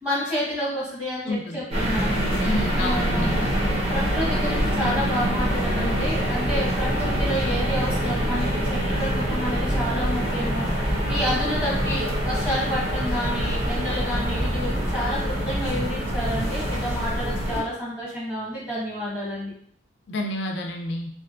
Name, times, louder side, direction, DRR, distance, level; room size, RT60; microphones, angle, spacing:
voice 1, 0.0-2.4 2.8-19.5, equal, 5° right, -7 dB, 1.2 m, -30 dB
voice 2, 1.3-1.6 2.4-3.4 20.1-21.1, left 2 dB, 75° left, 3 dB, 0.4 m, -29 dB
sound 1, 1.7-17.6, equal, 35° right, 0.9 m, -25 dB
3.4 x 2.5 x 2.4 m, 0.62 s
head